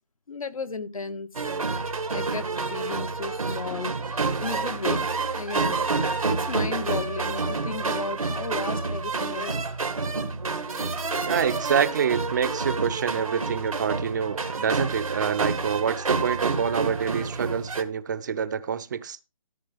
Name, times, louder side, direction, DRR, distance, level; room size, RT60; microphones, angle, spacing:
voice 1, 0.3-1.3 2.1-5.0 5.3-5.8 6.0-9.6, left 4 dB, 80° left, 1.7 m, -34 dB
sound 1, 1.3-17.8, right 4 dB, 90° right, 2.0 m, -28 dB
voice 2, 11.2-19.2, right 7 dB, 35° right, 0.6 m, -27 dB
14.0 x 8.5 x 3.5 m
hypercardioid pair, 160°, 17 cm